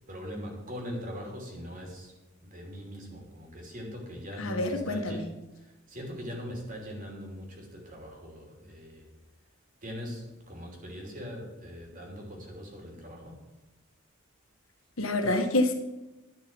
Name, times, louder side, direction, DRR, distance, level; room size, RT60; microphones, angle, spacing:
voice 1, 0.1-2.1 2.4-5.2 5.5-9.1 9.8-13.4, equal, 40° right, 1 dB, 3.1 m, -41 dB
voice 2, 4.4-5.2 15.0-15.7, left 1 dB, 80° left, 5 dB, 1.6 m, -27 dB
10.5 x 6.2 x 9.0 m, 1.0 s
head